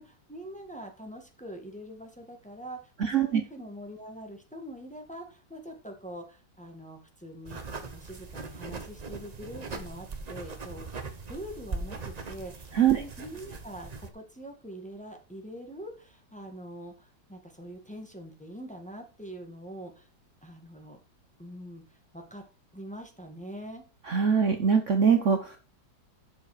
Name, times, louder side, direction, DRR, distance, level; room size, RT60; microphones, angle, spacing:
voice 1, 0.0-7.6 7.9-10.9 11.3-20.1 20.4-21.0 21.4-22.4 22.7-23.8, equal, 5° left, 2 dB, 1.5 m, -44 dB
voice 2, 3.0-3.4 12.7-13.0 24.0-25.6, right 7 dB, 55° right, 6 dB, 1.0 m, -23 dB
sound 1, 7.5-14.1, right 3 dB, 35° right, 0.7 m, -40 dB
7.5 x 6.9 x 4.9 m, 0.34 s
omnidirectional pair, 1.9 m